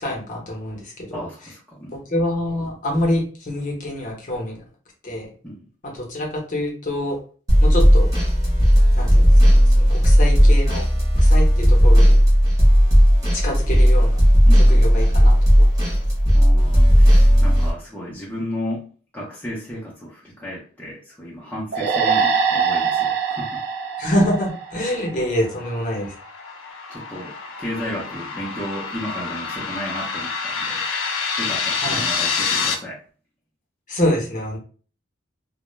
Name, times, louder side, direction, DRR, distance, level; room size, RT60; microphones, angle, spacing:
voice 1, 0.0-1.2 1.9-4.6 5.0-5.3 5.8-7.2 7.6-8.1 9.0-10.9 11.2-12.2 13.3-14.2 14.7-15.7 24.0-26.2 31.8-32.0 33.9-34.6, left 1 dB, 40° left, -1 dB, 0.7 m, -26 dB
voice 2, 1.1-2.0 5.4-5.7 14.5-14.8 16.3-18.9 19.1-23.6 26.9-30.8 31.4-33.0, equal, 10° left, -6 dB, 0.5 m, -33 dB
sound 1, 7.5-17.7, equal, 20° right, 0.8 m, -14 dB
sound 2, 21.7-25.2, right 6 dB, 55° right, 0.3 m, -23 dB
sound 3, 25.0-32.7, left 5 dB, 80° left, 0.4 m, -27 dB
2.1 x 2.1 x 3.0 m, 0.41 s
head